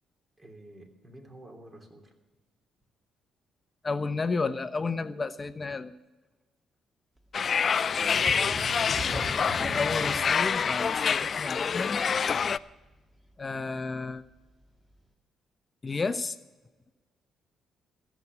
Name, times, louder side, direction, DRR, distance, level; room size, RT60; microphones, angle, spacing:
voice 1, 0.4-2.1 8.1-8.8, right 1 dB, 25° right, 2 dB, 3.0 m, -50 dB
voice 2, 3.8-5.9 9.7-12.0 13.4-14.2 15.8-16.4, left 4 dB, 30° left, 11 dB, 0.9 m, -32 dB
sound 1, 7.3-12.6, left 6 dB, 45° left, 0.3 m, -26 dB
sound 2, 8.1-13.6 14.0-14.1 14.6-14.7, right 1 dB, 10° right, 1.8 m, -40 dB
14.5 x 7.2 x 9.6 m, 1.2 s
cardioid pair, 90°, 0 cm